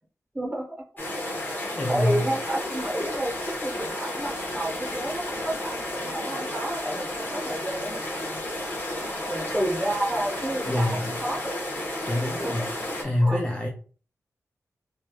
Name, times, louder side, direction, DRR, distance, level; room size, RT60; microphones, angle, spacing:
voice 1, 0.3-0.8 1.5-8.8 9.3-11.7 12.2-12.6 13.2-13.4, right 1 dB, 15° right, -3 dB, 1.5 m, -31 dB
sound 1, 1.0-13.0, left 1 dB, 35° left, 1.2 m, -32 dB
voice 2, 1.3-2.3 10.7-11.2 11.9-13.7, left 1 dB, 15° left, -1 dB, 0.5 m, -27 dB
3.4 x 3.0 x 2.4 m, 0.39 s
wide cardioid pair, 115°, 6 cm